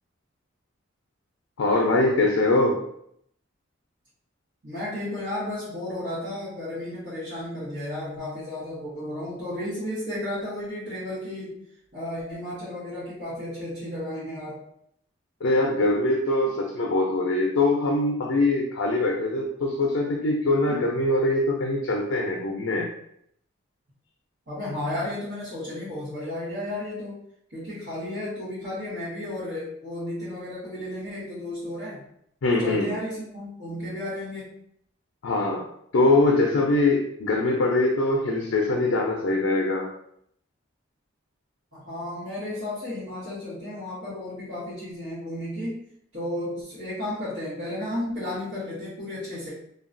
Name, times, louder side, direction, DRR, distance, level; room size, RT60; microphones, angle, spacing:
voice 1, 1.6-2.8 15.4-22.9 32.4-32.9 35.2-35.6 35.9-39.9, left 2 dB, 75° left, 0 dB, 0.4 m, -23 dB
voice 2, 4.6-11.6 11.9-14.6 20.7-20.8 24.5-27.2 27.5-32.0 32.5-34.5 41.7-45.8 46.1-49.5, left 1 dB, 65° right, -13 dB, 1.2 m, -33 dB
2.8 x 2.3 x 2.5 m, 0.71 s
head